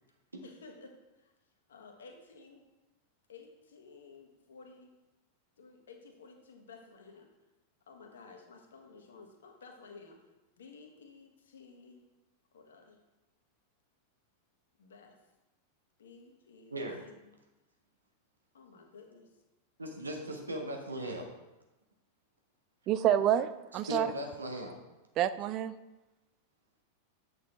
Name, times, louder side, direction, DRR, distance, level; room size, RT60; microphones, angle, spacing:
voice 1, 0.4-1.3 1.7-2.6 3.3-4.9 5.6-7.3 7.9-10.3 10.6-12.0 12.5-13.0 14.8-15.2 16.0-17.4 18.5-19.3, left 4 dB, 65° left, 3 dB, 1.3 m, -54 dB
voice 2, 16.7-17.0 19.8-21.3 23.9-24.8, right 1 dB, 80° right, 2 dB, 1.2 m, -38 dB
voice 3, 22.9-24.1 25.2-25.7, right 10 dB, 35° right, 13 dB, 0.4 m, -28 dB
8.1 x 6.2 x 3.3 m, 1.0 s
figure-of-eight pair, 90°, 0 cm